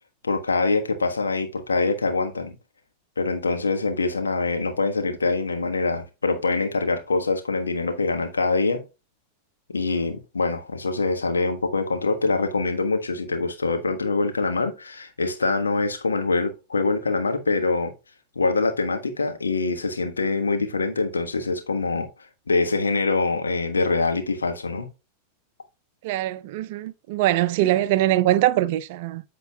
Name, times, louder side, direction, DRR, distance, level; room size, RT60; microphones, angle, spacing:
voice 1, 0.2-2.5 3.2-8.8 9.7-17.9 18.3-22.1 22.5-24.9, left 3 dB, 75° left, 1.3 m, -24 dB
voice 2, 26.0-29.2, right 14 dB, 50° right, 0.5 m, -22 dB
13.5 x 4.6 x 2.3 m
figure-of-eight pair, 90°, 0 cm